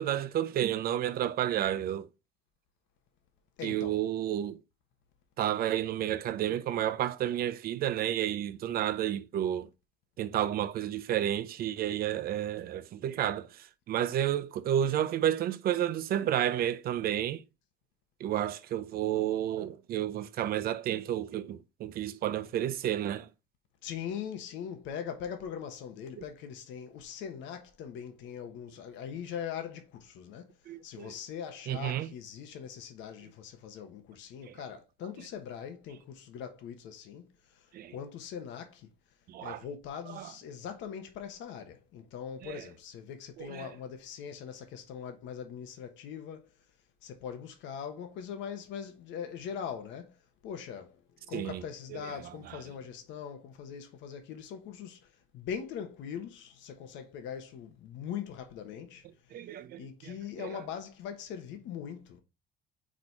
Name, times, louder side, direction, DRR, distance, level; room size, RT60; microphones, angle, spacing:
voice 1, 0.0-2.1 3.6-4.6 5.4-9.7 10.2-13.5 13.9-17.4 18.2-23.3 30.7-31.1 31.7-32.1 34.5-34.6 37.7-37.9 39.3-39.6 40.1-40.3 42.4-42.6 43.4-43.7 51.3-51.6 51.9-52.0 59.3-60.5, right 11 dB, 55° right, 0.6 m, -31 dB
voice 2, 3.6-4.0 23.8-30.5 30.8-38.9 39.4-46.5 47.0-50.1 50.4-51.0 51.3-55.0 55.3-59.0 59.8-62.2, left 8 dB, 80° left, 1.2 m, -41 dB
5.0 x 4.2 x 4.6 m
cardioid pair, 140°, 19 cm